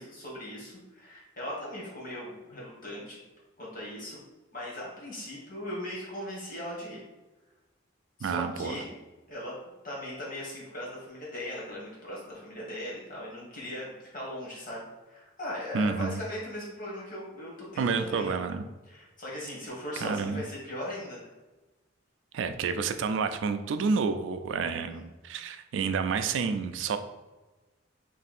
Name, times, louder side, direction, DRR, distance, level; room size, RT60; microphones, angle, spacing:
voice 1, 0.0-3.2 3.6-4.2 4.5-7.0 8.2-8.9 9.3-9.5 9.8-18.4 18.9-21.3 24.9-25.0, left 1 dB, 45° left, -5 dB, 1.4 m, -39 dB
voice 2, 8.2-8.8 15.7-16.2 17.8-18.6 20.0-20.4 22.3-27.0, right 5 dB, 70° right, 9 dB, 0.3 m, -29 dB
3.2 x 2.7 x 4.2 m, 1.2 s
head